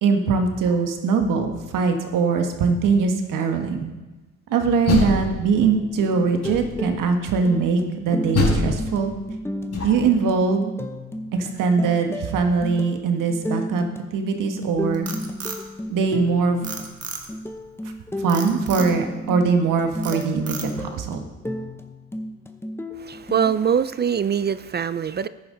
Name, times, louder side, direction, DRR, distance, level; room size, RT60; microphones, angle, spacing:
voice 1, 0.0-3.9 4.5-9.1 9.8-10.7 11.3-13.8 14.1-15.1 15.9-16.6 18.2-21.2, right 5 dB, 85° right, 5 dB, 1.5 m, -21 dB
Door, 4.6-5.8 6.4-7.0 8.3-10.2, left 2 dB, 55° left, 4.4 m, -25 dB
Groove Music, 5.6-23.5, left 1 dB, 10° left, 0.9 m, -33 dB
Frog, 14.7-16.3 16.6-17.5 18.3-18.9 19.4-19.7 20.0-21.0, right 5 dB, 50° right, 1.7 m, -34 dB
voice 2, 23.0-25.3, right 7 dB, 35° right, 14 dB, 0.4 m, -23 dB
13.5 x 10.5 x 3.9 m, 1.2 s
cardioid pair, 90°, 31 cm